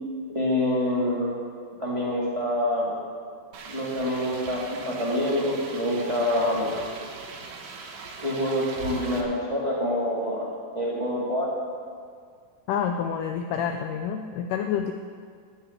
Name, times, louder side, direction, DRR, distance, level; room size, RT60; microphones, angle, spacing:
voice 1, 0.3-1.3 1.8-2.9 3.7-6.7 8.2-10.5 10.7-11.5, left 1 dB, 15° right, -5 dB, 1.2 m, -26 dB
sound 1, 3.5-9.2, right 4 dB, 65° right, 2.0 m, -40 dB
voice 2, 12.7-14.9, left 8 dB, 80° left, 5 dB, 1.9 m, -28 dB
12.0 x 7.0 x 9.2 m, 2.1 s
omnidirectional pair, 4.3 m